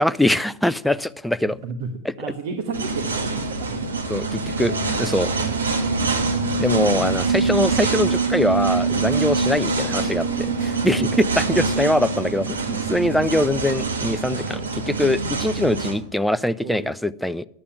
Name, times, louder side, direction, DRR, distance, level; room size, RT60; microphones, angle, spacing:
voice 1, 0.0-1.6 4.1-5.3 6.6-17.5, left 1 dB, ahead, 15 dB, 0.4 m, -23 dB
voice 2, 2.2-3.9 16.6-16.9, right 4 dB, 55° right, 5 dB, 1.3 m, -32 dB
sound 1, 2.7-16.0, right 4 dB, 75° right, 2.0 m, -24 dB
11.0 x 8.5 x 8.9 m, 0.73 s
figure-of-eight pair, 90°, 0 cm